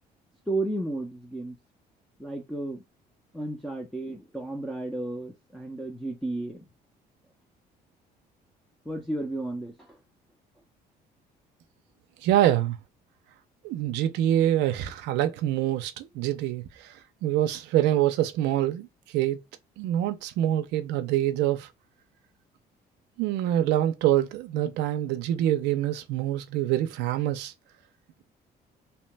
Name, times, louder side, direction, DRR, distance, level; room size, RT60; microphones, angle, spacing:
voice 1, 0.5-1.6 2.2-2.8 3.3-6.6 8.9-10.0, right 2 dB, ahead, 0.5 m, -33 dB
voice 2, 12.2-12.8 13.6-19.4 19.8-21.7 23.2-27.5, right 12 dB, 90° right, 0.4 m, -25 dB
2.8 x 2.1 x 3.1 m
cardioid pair, 110°, 17 cm